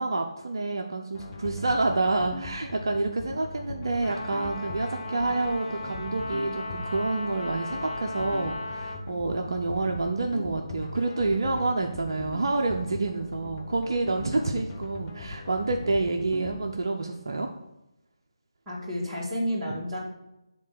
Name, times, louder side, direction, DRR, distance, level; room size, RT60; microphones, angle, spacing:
voice 1, 0.0-17.5 19.7-19.8, right 3 dB, 50° right, 3 dB, 0.6 m, -28 dB
sound 1, 1.1-16.6, left 1 dB, 20° left, 0.9 m, -40 dB
Trumpet, 4.0-9.0, left 3 dB, 70° left, 1.7 m, -37 dB
voice 2, 18.7-20.0, equal, 10° right, -8 dB, 2.0 m, -30 dB
7.4 x 3.9 x 6.6 m, 0.94 s
figure-of-eight pair, 155°, 3 cm